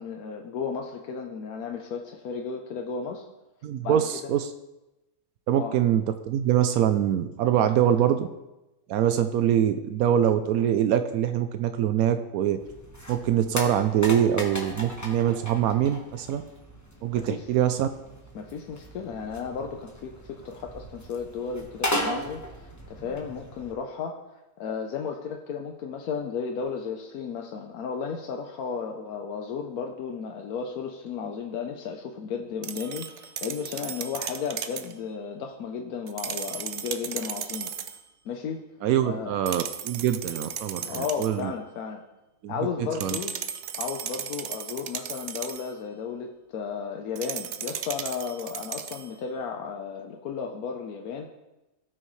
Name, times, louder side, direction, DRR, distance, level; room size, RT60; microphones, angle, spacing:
voice 1, 0.0-3.3 3.8-4.3 5.6-5.7 17.1-17.5 18.3-38.0 38.2-38.6 39.0-39.3 40.9-42.0 42.5-43.4 43.8-51.3, left 6 dB, 90° left, 3 dB, 1.2 m, -34 dB
voice 2, 3.6-4.5 5.5-8.3 8.9-12.6 13.1-16.4 17.0-17.9 38.8-41.5 42.4-42.5 43.0-43.2, right 10 dB, 85° right, 9 dB, 1.0 m, -24 dB
sound 1, 12.6-23.7, equal, 15° left, 1.2 m, -37 dB
sound 2, 32.6-34.9 36.1-38.0 39.5-41.4 43.0-45.7 47.2-49.1, right 8 dB, 60° right, 0.8 m, -36 dB
16.5 x 6.3 x 3.2 m, 1.0 s
omnidirectional pair, 1.5 m